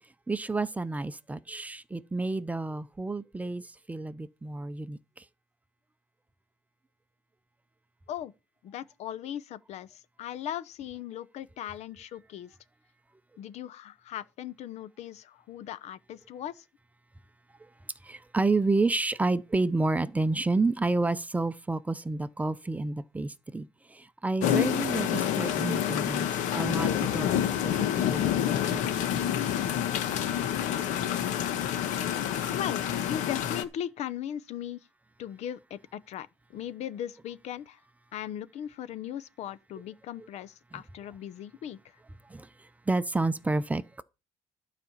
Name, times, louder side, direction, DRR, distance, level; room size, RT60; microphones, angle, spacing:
voice 1, 0.3-5.2 18.0-28.3 28.7-29.3 42.3-42.5 42.9-44.0, right 3 dB, 10° right, 0.7 m, -30 dB
voice 2, 8.6-12.5 13.4-16.6 32.5-34.8 35.2-37.8 38.1-41.8, left 10 dB, 60° left, 0.8 m, -38 dB
sound 1, 24.4-33.6, left 10 dB, 80° left, 1.4 m, -28 dB
12.5 x 5.1 x 7.2 m
cardioid pair, 120°, 13 cm